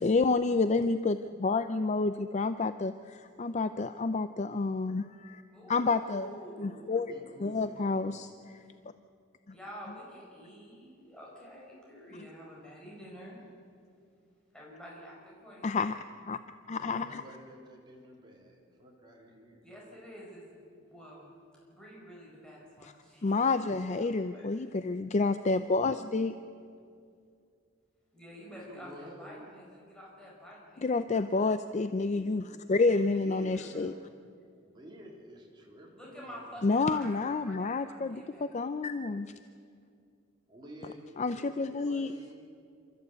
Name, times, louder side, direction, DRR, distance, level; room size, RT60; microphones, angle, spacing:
voice 1, 0.0-5.4 5.7-6.3 6.6-7.1 7.4-8.6 15.6-15.9 16.3-16.4 16.7-17.2 22.8-22.9 23.2-26.3 30.8-33.9 36.6-39.3 41.2-42.1, left 3 dB, 35° left, 11 dB, 0.5 m, -29 dB
voice 2, 5.5-7.1 9.5-13.4 14.5-16.0 19.6-21.3 21.7-24.5 28.1-31.0 33.1-33.9 35.9-38.5, equal, 5° left, -5 dB, 5.1 m, -49 dB
voice 3, 6.9-8.4 16.7-19.6 28.4-29.5 31.9-32.5 33.1-33.8 34.6-36.8 40.5-42.4, equal, 25° right, -2 dB, 3.6 m, -51 dB
28.0 x 14.0 x 8.2 m, 2.3 s
head